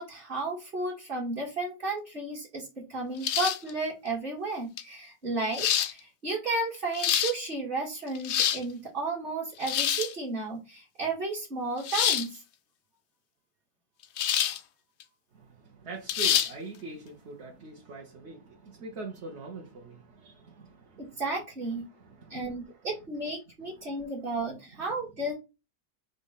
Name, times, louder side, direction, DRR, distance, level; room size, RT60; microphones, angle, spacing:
voice 1, 0.0-12.4 21.0-21.9 22.3-25.3, right 2 dB, 35° right, 1.6 m, -33 dB
sound 1, 3.2-3.7 4.8-4.9 5.5-5.9 6.7-7.3 8.1-8.6 9.6-10.1 11.8-12.3 14.2-14.6 15.0-15.1 16.1-16.5, left 10 dB, 80° left, 0.6 m, -26 dB
voice 2, 15.3-21.2 21.9-22.5 24.0-24.1, right 3 dB, 50° right, 1.0 m, -43 dB
5.1 x 2.4 x 3.9 m
omnidirectional pair, 1.7 m